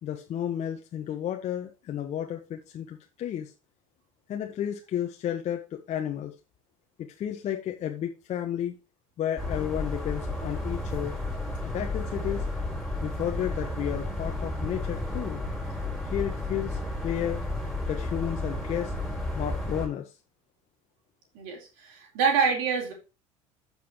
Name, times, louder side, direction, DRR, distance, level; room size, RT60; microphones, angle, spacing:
voice 1, 0.0-3.5 4.3-6.3 7.0-8.8 9.2-11.2 11.6-12.5 13.0-15.4 16.0-17.4 17.9-18.9 19.3-20.1, left 10 dB, 40° left, 3 dB, 1.3 m, -32 dB
sound 1, 9.4-19.9, left 2 dB, ahead, 4.5 m, -32 dB
voice 2, 21.3-22.9, right 6 dB, 55° right, 0 dB, 4.2 m, -26 dB
15.0 x 5.6 x 3.1 m, 0.30 s
figure-of-eight pair, 70°, 18 cm